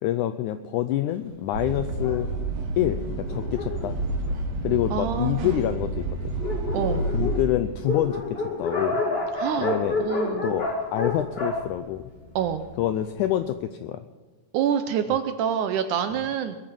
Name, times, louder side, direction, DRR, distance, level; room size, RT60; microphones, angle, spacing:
voice 1, 0.0-2.3 2.8-4.0 4.6-6.3 7.1-9.0 9.6-10.0 10.4-12.0 12.8-14.0, left 12 dB, 85° left, 10 dB, 1.8 m, -27 dB
sound 1, 1.5-7.4, right 2 dB, 55° right, 2.3 m, -29 dB
Dog, 1.9-4.9 5.6-5.7 6.0-6.1 6.3-12.7, left 2 dB, 25° left, 1.3 m, -30 dB
voice 2, 4.9-5.7 6.7-7.1 9.4-9.7 10.0-10.5 12.4-12.7 14.5-16.6, right 8 dB, 75° right, 9 dB, 1.9 m, -26 dB
21.5 x 9.0 x 6.2 m, 1.3 s
omnidirectional pair, 4.2 m